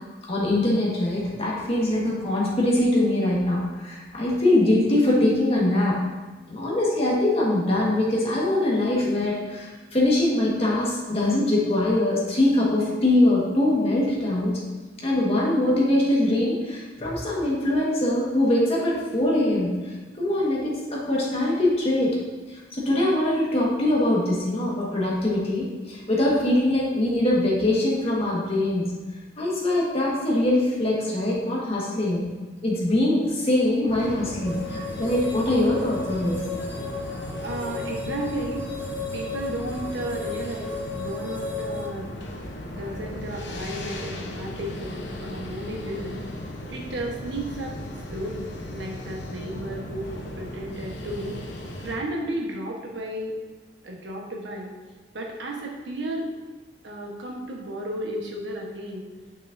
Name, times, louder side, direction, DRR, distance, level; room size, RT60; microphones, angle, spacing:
voice 1, 0.3-6.0 6.5-14.6 15.0-19.8 20.2-22.2 22.7-28.9 29.4-32.3 32.6-36.4, left 1 dB, 35° left, -4 dB, 1.6 m, -23 dB
sound 1, 33.9-52.0, left 1 dB, 70° left, 0.8 m, -36 dB
sound 2, 34.4-41.9, left 4 dB, 15° right, 1.6 m, -34 dB
voice 2, 37.4-38.6 39.1-42.1 42.7-46.2 46.7-47.8 48.1-51.3 51.8-53.3 53.8-54.7 55.1-56.3 56.8-59.0, right 1 dB, 80° right, -1 dB, 1.2 m, -33 dB
6.3 x 6.3 x 2.6 m, 1.3 s
head